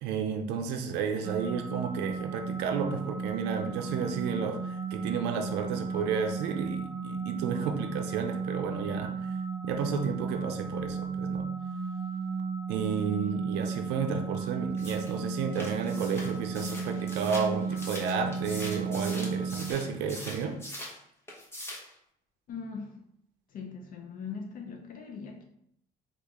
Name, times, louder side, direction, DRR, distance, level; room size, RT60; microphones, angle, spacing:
voice 1, 0.0-9.1 9.6-11.5 12.7-20.6, right 6 dB, 85° right, 4 dB, 0.5 m, -32 dB
sound 1, 1.2-19.7, right 5 dB, 15° right, 0.6 m, -34 dB
sound 2, 14.8-21.0 21.3-21.9, left 1 dB, 15° left, 0.9 m, -42 dB
voice 2, 22.5-23.0 23.5-25.4, left 5 dB, 55° left, 3 dB, 0.5 m, -40 dB
3.6 x 2.4 x 3.0 m, 0.72 s
cardioid pair, 110°, 17 cm